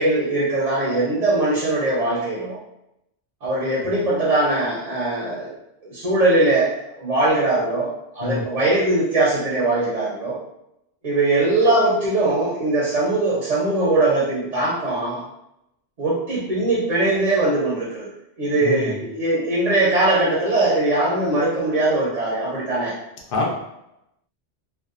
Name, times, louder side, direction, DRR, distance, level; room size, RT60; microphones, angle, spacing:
voice 1, 0.0-2.6 3.4-5.6 5.8-6.7 7.0-10.4 11.0-15.2 16.0-22.9, right 2 dB, 45° right, -6 dB, 0.6 m, -21 dB
voice 2, 18.6-19.0 23.3-23.5, left 3 dB, 60° left, -1 dB, 0.7 m, -25 dB
2.7 x 2.2 x 2.4 m, 0.84 s
omnidirectional pair, 1.1 m